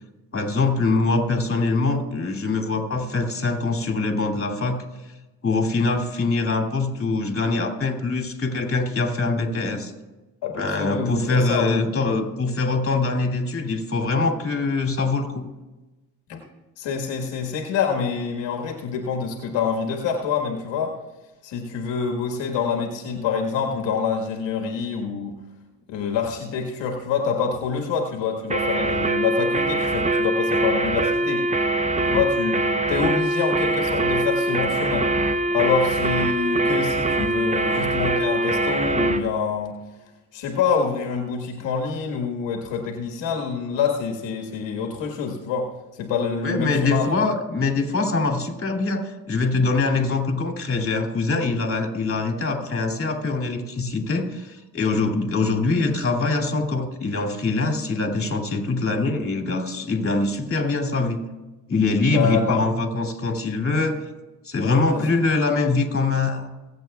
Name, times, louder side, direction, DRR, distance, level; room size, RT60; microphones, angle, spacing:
voice 1, 0.3-4.8 5.4-9.9 10.6-15.5 46.4-61.2 61.7-64.0 64.4-66.5, left 3 dB, 30° left, 3 dB, 2.6 m, -23 dB
voice 2, 10.4-11.9 16.3-16.4 16.8-20.9 21.4-25.4 25.9-31.5 32.1-35.1 35.5-39.8 40.3-45.6 45.9-47.1 62.1-62.6 64.6-65.1, left 6 dB, 75° left, 1 dB, 1.6 m, -26 dB
sound 1, 28.5-39.3, right 2 dB, 15° right, 0.8 m, -23 dB
23.0 x 8.1 x 2.3 m, 1.1 s
supercardioid pair, 55°, 44 cm